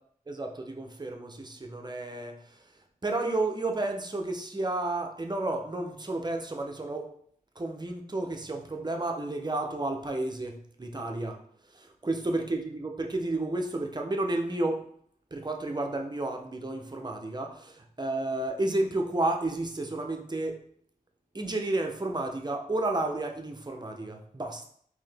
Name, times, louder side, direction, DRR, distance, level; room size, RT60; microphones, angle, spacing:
voice 1, 0.3-2.6 3.0-7.1 7.6-11.4 11.7-14.9 15.3-20.6 21.3-24.7, right 2 dB, 30° right, 2 dB, 0.6 m, -31 dB
3.7 x 2.7 x 3.3 m, 0.62 s
wide cardioid pair, 65°, 16 cm